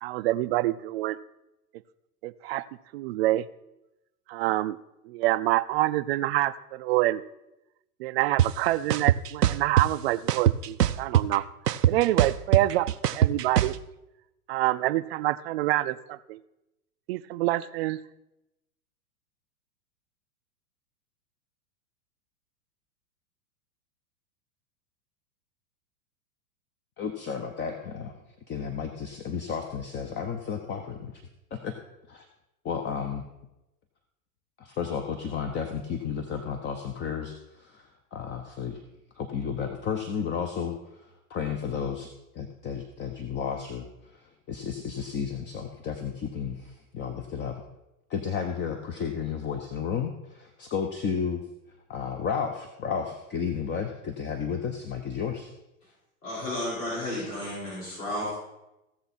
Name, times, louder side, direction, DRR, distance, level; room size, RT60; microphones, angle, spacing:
voice 1, 0.0-1.2 2.2-2.6 2.9-3.5 4.3-4.8 5.0-7.2 8.0-12.9 13.1-13.8 14.5-16.4 17.1-18.0, right 16 dB, 45° right, 14 dB, 0.5 m, -26 dB
sound 1, 8.4-8.5 8.9-9.9 10.3-11.4 11.7-13.7, right 11 dB, 90° right, 0.6 m, -21 dB
voice 2, 27.0-28.1 28.5-31.1 31.5-31.7 32.1-32.3 32.6-33.2 34.6-38.8 39.2-40.8 41.3-42.1 42.3-43.9 44.5-47.5 48.1-51.4 51.9-55.5, left 6 dB, 25° left, 6 dB, 0.9 m, -32 dB
voice 3, 56.2-58.3, left 1 dB, 80° left, -8 dB, 5.0 m, -32 dB
16.0 x 7.1 x 4.3 m, 0.93 s
hypercardioid pair, 105°, 46 cm